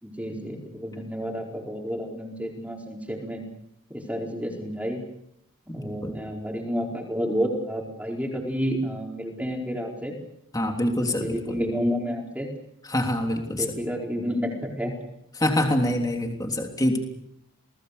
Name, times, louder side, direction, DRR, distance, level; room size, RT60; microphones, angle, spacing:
voice 1, 0.0-3.4 3.9-5.0 5.7-10.1 11.0-12.5 13.5-14.9, equal, 5° right, 0 dB, 4.6 m, -30 dB
voice 2, 5.7-6.1 10.5-11.6 12.9-13.6 15.4-17.1, left 1 dB, 15° left, 2 dB, 3.3 m, -25 dB
30.0 x 19.5 x 6.9 m, 0.78 s
head